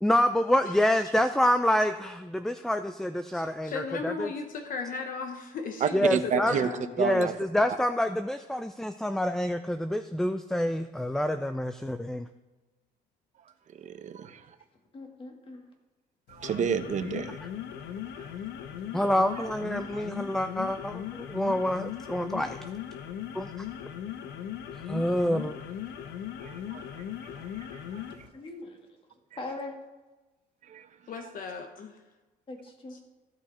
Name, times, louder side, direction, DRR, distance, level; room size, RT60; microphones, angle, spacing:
voice 1, 0.0-4.3 5.9-6.5 7.0-12.3 18.9-22.6 23.3-23.5 24.7-25.5, left 1 dB, 5° left, 0.4 m, -27 dB
voice 2, 3.3-6.9 31.1-32.0 32.9-33.0, left 4 dB, 55° left, 1.1 m, -36 dB
voice 3, 5.8-6.7 7.0-7.3 13.8-14.5 16.3-17.4 18.2-18.3 19.9-20.1 25.3-25.4 26.4-28.3 30.6-30.9, right 8 dB, 45° right, 0.8 m, -31 dB
voice 4, 14.9-15.6 22.6-22.7 28.3-28.8 29.4-29.7 32.5-33.0, left 2 dB, 30° left, 2.2 m, -40 dB
sound 1, 16.3-28.3, left 9 dB, 85° left, 0.9 m, -38 dB
15.0 x 6.1 x 4.3 m
cardioid pair, 110°, 17 cm